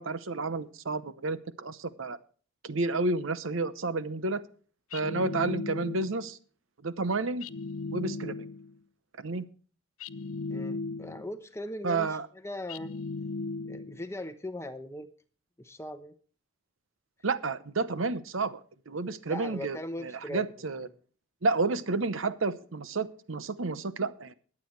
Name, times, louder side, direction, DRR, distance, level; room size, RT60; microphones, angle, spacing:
voice 1, 0.0-2.2 2.6-4.4 4.9-6.4 6.8-7.5 7.9-8.3 9.2-9.5 11.8-12.3 17.2-18.6 18.9-20.9 21.4-24.3, right 3 dB, 75° right, 14 dB, 0.9 m, -31 dB
sound 1, 4.9-6.3 7.4-8.7 10.0-11.4 12.7-14.1, left 3 dB, 90° left, 0.6 m, -37 dB
voice 2, 10.5-12.1 12.4-12.9 13.6-15.1 15.6-16.1 19.3-20.5, left 1 dB, 15° left, 10 dB, 0.8 m, -39 dB
21.5 x 8.5 x 3.2 m, 0.41 s
head